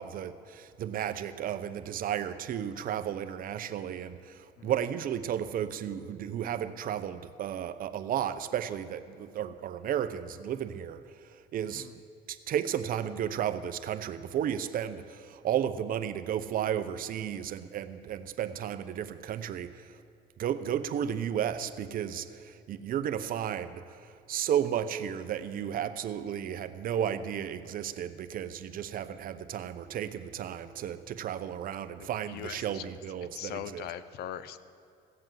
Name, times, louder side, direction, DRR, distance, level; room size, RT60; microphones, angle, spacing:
voice 1, 0.0-11.0 11.3-11.9 12.3-19.9 20.4-33.8, right 9 dB, 55° right, 11 dB, 0.7 m, -33 dB
voice 2, 32.0-32.8 33.3-34.6, left 11 dB, 70° left, 15 dB, 0.7 m, -41 dB
16.0 x 7.8 x 7.6 m, 2.4 s
cardioid pair, 110°, 17 cm